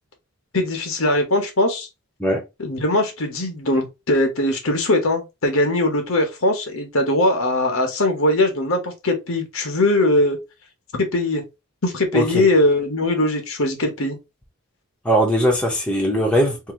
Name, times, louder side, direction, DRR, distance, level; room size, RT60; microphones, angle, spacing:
voice 1, 0.5-1.9 2.6-10.4 11.0-11.4 11.8-14.2, left 1 dB, 70° left, 1.1 m, -20 dB
voice 2, 12.1-12.5 15.0-16.7, equal, 5° left, 0.9 m, -20 dB
2.8 x 2.7 x 3.7 m
head